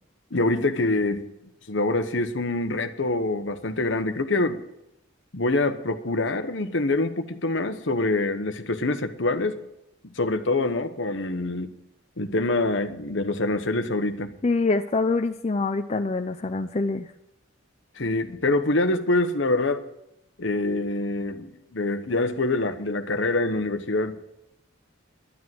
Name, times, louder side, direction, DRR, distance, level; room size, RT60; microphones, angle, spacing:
voice 1, 0.3-1.3 1.7-4.6 5.3-9.6 10.0-11.7 12.2-14.4 18.0-19.8 20.4-24.2, left 2 dB, 65° left, 1.1 m, -25 dB
voice 2, 14.4-17.1, left 3 dB, 30° left, 0.5 m, -25 dB
11.5 x 10.5 x 7.7 m
head